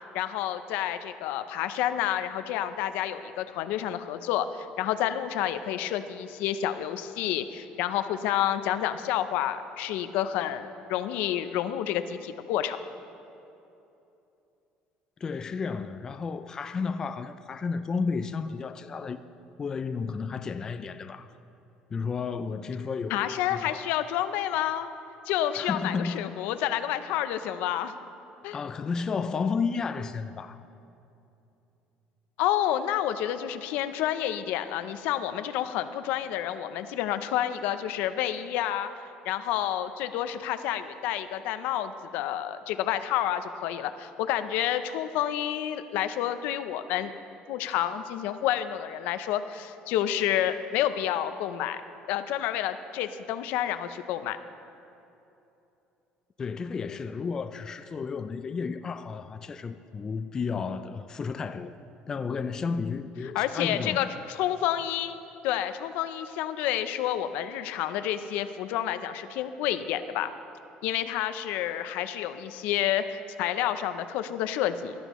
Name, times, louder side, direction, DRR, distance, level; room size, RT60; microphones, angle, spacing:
voice 1, 0.1-12.8 23.1-24.9 25.3-27.9 28.4-28.6 32.4-38.9 39.2-47.1 47.5-51.8 52.1-54.4 63.3-65.2 65.4-70.3 70.8-74.9, left 11 dB, 75° left, 0.6 m, -29 dB
voice 2, 15.2-19.2 19.6-21.3 21.9-23.8 25.6-26.4 28.5-30.6 56.4-61.7 62.1-64.1, left 5 dB, 20° left, 0.3 m, -32 dB
17.5 x 13.0 x 3.1 m
cardioid pair, 160°, 3 cm